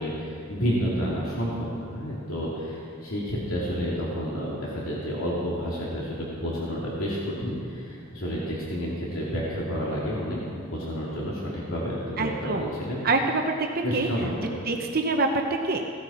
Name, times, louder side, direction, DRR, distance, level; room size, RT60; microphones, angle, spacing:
voice 1, 0.0-13.0 13.8-14.3, equal, 75° left, -6 dB, 2.6 m, -30 dB
voice 2, 12.2-12.7 13.0-14.1 14.7-15.8, right 3 dB, 45° right, 3 dB, 0.8 m, -25 dB
16.5 x 14.0 x 4.3 m, 2.3 s
head